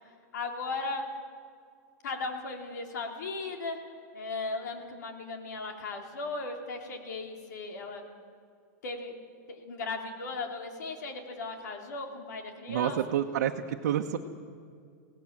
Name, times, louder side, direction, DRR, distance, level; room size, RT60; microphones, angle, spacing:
voice 1, 0.3-1.0 2.0-3.8 4.1-8.0 8.8-9.1 9.5-13.0, left 3 dB, 85° left, 4 dB, 3.4 m, -37 dB
voice 2, 12.7-14.2, right 10 dB, 75° right, 1 dB, 1.1 m, -29 dB
24.0 x 18.0 x 7.4 m, 2.2 s
supercardioid pair, 165°, 9 cm